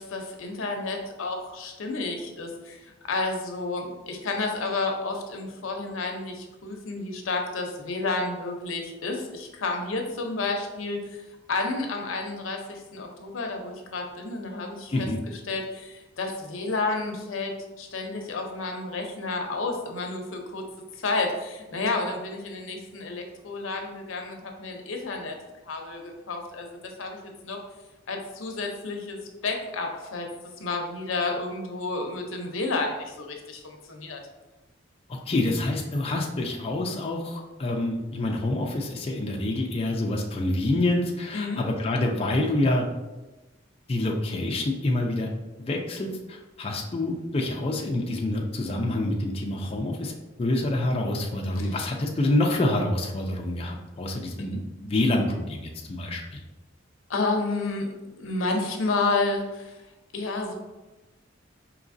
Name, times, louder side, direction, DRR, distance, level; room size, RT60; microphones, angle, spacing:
voice 1, 0.0-11.2 11.5-15.1 15.5-20.6 21.0-25.4 25.7-27.6 28.1-30.3 30.6-34.2 41.3-41.6 51.6-51.7 57.1-59.7 60.1-60.5, left 3 dB, 85° left, 2 dB, 0.6 m, -31 dB
voice 2, 35.1-42.9 43.9-45.3 45.6-56.4, left 1 dB, 30° left, 0 dB, 0.4 m, -27 dB
4.9 x 2.9 x 2.6 m, 1.1 s
head